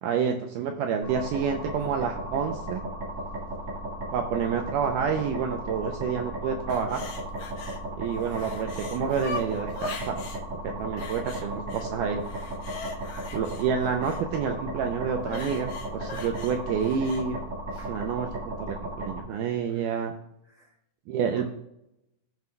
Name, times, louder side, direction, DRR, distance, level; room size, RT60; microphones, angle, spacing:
voice 1, 0.0-2.8 4.1-7.0 8.0-10.1 10.8-12.2 13.3-17.4 17.9-20.1 21.1-21.5, right 7 dB, 85° right, 4 dB, 1.9 m, -28 dB
sound 1, 1.0-19.2, right 1 dB, 40° right, 2.0 m, -35 dB
sound 2, 6.7-7.8 8.1-10.4 11.0-11.9 12.2-14.2 15.2-17.2 17.7-17.9, left 3 dB, 65° left, 2.0 m, -40 dB
voice 2, 19.5-20.0 20.4-20.8 21.2-21.5, equal, 30° left, -4 dB, 2.1 m, -46 dB
15.0 x 5.4 x 2.2 m, 0.80 s
omnidirectional pair, 4.1 m